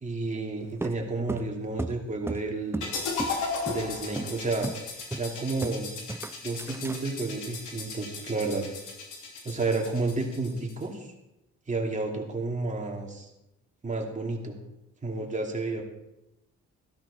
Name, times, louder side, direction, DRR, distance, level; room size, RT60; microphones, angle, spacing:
voice 1, 0.0-2.9 3.7-4.7 5.2-6.0 6.4-8.7 9.4-11.1 11.7-13.3 13.8-14.6 15.0-15.8, right 3 dB, 25° right, 1 dB, 2.7 m, -31 dB
sound 1, 0.8-2.9 3.2-3.4 3.7-3.8 4.2-4.3 4.6-4.8 5.1-5.8 6.1-7.0, right 2 dB, 10° right, 0.5 m, -34 dB
sound 2, 2.8-10.8, left 4 dB, 80° left, 2.9 m, -36 dB
14.0 x 12.5 x 4.3 m, 0.90 s
cardioid pair, 90°, 30 cm